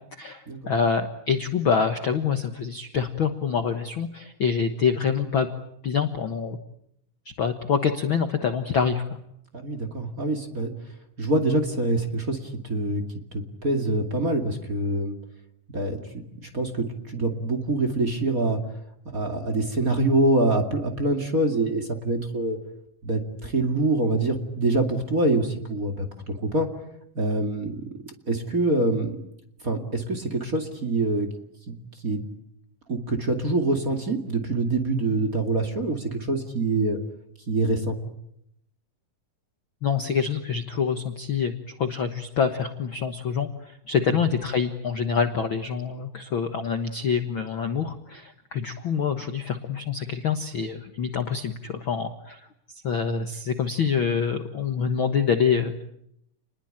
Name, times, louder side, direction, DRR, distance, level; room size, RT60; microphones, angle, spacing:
voice 1, 0.2-5.5 5.8-6.6 7.4-9.2 39.8-55.8, left 6 dB, 55° left, 7 dB, 1.5 m, -26 dB
voice 2, 9.5-10.7 11.2-13.0 13.3-15.1 15.7-16.0 16.4-18.6 19.1-22.6 23.0-26.7 27.1-27.8 28.3-29.2 29.6-31.3 31.7-31.8 32.0-32.2 32.9-37.0 37.5-38.0, right 2 dB, 30° right, 5 dB, 2.4 m, -25 dB
30.0 x 20.5 x 8.9 m, 0.76 s
omnidirectional pair, 3.9 m